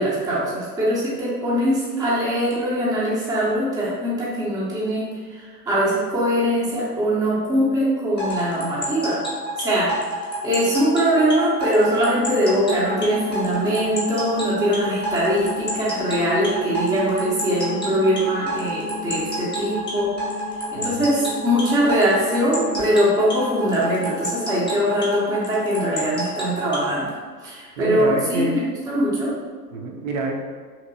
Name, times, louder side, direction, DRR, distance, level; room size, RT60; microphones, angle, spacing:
voice 1, 0.0-9.2 9.6-20.1 20.7-28.6 28.9-29.3, equal, 10° right, -7 dB, 0.5 m, -22 dB
sound 1, 8.2-26.9, right 2 dB, 10° left, 0.8 m, -28 dB
sound 2, 11.8-24.2, left 7 dB, 55° left, 0.6 m, -36 dB
voice 2, 20.7-21.1 27.8-28.6 29.7-30.4, right 2 dB, 55° right, 0 dB, 0.6 m, -27 dB
2.8 x 2.8 x 2.6 m, 1.5 s
figure-of-eight pair, 95°, 49 cm